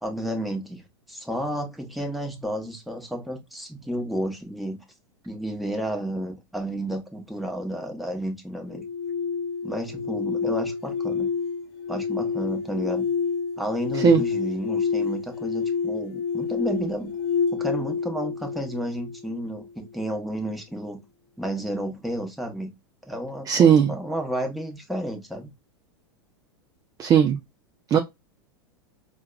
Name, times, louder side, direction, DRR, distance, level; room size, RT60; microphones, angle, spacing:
voice 1, 0.0-4.8 5.2-8.8 9.6-11.3 11.9-13.1 13.6-17.1 17.5-21.0 21.4-22.7 23.0-25.5, right 1 dB, ahead, 0.9 m, -31 dB
sound 1, 8.7-19.7, left 5 dB, 60° left, 0.5 m, -28 dB
voice 2, 23.5-23.9 27.0-27.4 27.9-28.0, right 8 dB, 25° right, 0.4 m, -17 dB
4.5 x 2.2 x 2.2 m
hypercardioid pair, 95°, 14 cm